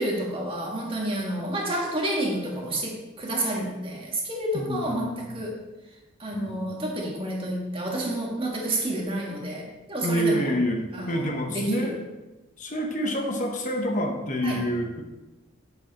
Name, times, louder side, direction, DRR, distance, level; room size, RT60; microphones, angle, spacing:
voice 1, 0.0-5.6 6.2-10.5 10.9-11.2 11.5-12.0 14.4-14.7, right 1 dB, 25° right, -2 dB, 1.8 m, -29 dB
voice 2, 4.5-5.4 6.3-6.9 10.0-11.9 12.6-15.0, equal, 40° left, 2 dB, 1.1 m, -28 dB
8.2 x 7.7 x 4.2 m, 1.1 s
head